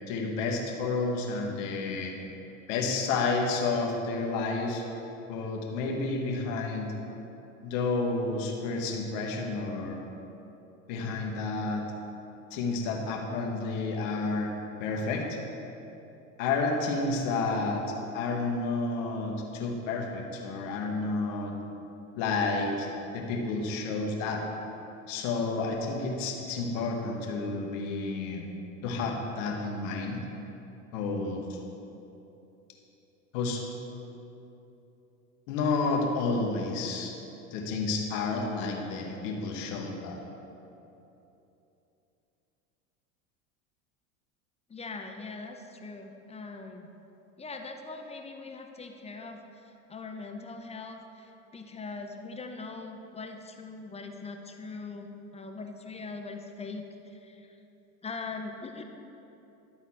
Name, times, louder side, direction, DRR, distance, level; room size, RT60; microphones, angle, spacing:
voice 1, 0.1-2.1 2.7-4.8 5.3-6.9 7.6-10.0 10.9-11.8 12.5-14.5 14.8-15.4 16.4-21.5 22.2-22.9 23.1-24.4 25.1-28.5 28.8-30.2 30.9-31.6 33.3-33.6 35.5-37.1 37.5-40.2, left 3 dB, 65° left, 1 dB, 1.3 m, -30 dB
voice 2, 44.7-46.9 47.4-57.6 58.0-58.8, left 3 dB, 15° left, 4 dB, 0.5 m, -41 dB
11.5 x 4.0 x 4.2 m, 3.0 s
hypercardioid pair, 85°, 41 cm